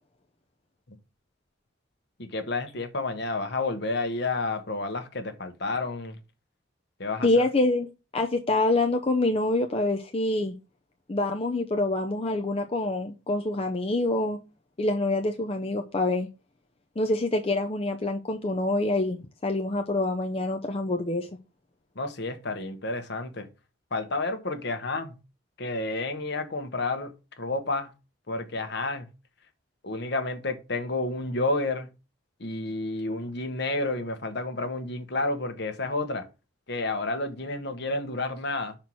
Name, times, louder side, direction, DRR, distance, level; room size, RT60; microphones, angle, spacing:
voice 1, 2.2-6.2 7.0-7.4 21.9-23.5 23.9-25.2 25.6-27.9 28.3-29.1 29.8-31.9 32.4-36.3 36.7-38.8, left 2 dB, 55° left, 1.1 m, -30 dB
voice 2, 7.2-7.9 8.1-10.5 11.1-14.4 14.8-16.3 17.0-21.3, left 2 dB, 30° left, 0.6 m, -26 dB
5.7 x 4.4 x 6.1 m
head